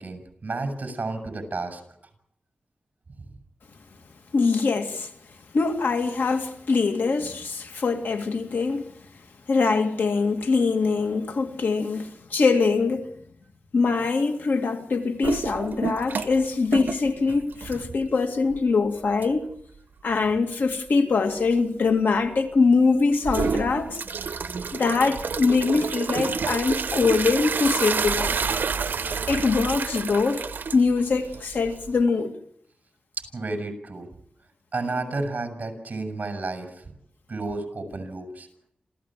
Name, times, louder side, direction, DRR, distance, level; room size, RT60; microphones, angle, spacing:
voice 1, 0.0-1.8 33.3-34.1 34.7-36.8 37.3-38.5, right 3 dB, 50° right, 6.5 m, -31 dB
voice 2, 4.3-5.1 5.5-8.9 9.5-13.1 13.7-19.5 20.0-24.0 24.7-28.4 29.3-30.4 30.7-32.4, left 4 dB, 90° left, 2.3 m, -23 dB
sound 1, 15.2-16.4 16.7-18.1 18.5-18.6 19.2-19.3 23.2-32.0, right 5 dB, 90° right, 0.8 m, -29 dB
27.5 x 15.5 x 7.5 m
wide cardioid pair, 95°, 3 cm